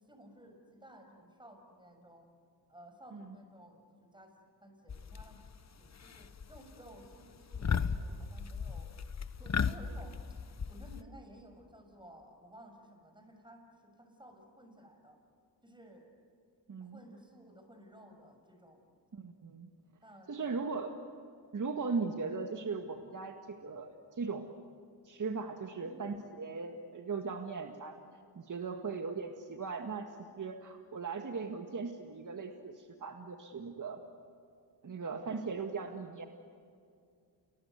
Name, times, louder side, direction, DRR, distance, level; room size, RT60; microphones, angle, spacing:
voice 1, 0.0-2.3 2.7-4.3 4.6-5.4 5.8-8.9 9.4-15.2 15.6-16.1 16.8-18.9 20.0-20.7 25.6-26.1, equal, 10° right, 5 dB, 6.4 m, -56 dB
sound 1, 4.9-5.6 5.9-6.6 6.9-7.1 7.5-11.0, left 6 dB, 40° left, 1.2 m, -35 dB
voice 2, 16.7-17.0 19.1-19.7 20.3-20.9 21.5-24.5 25.0-28.0 28.3-34.0 34.8-36.3, right 4 dB, 45° right, 5 dB, 1.8 m, -38 dB
29.5 x 21.0 x 8.1 m, 2.4 s
cardioid pair, 60°, 43 cm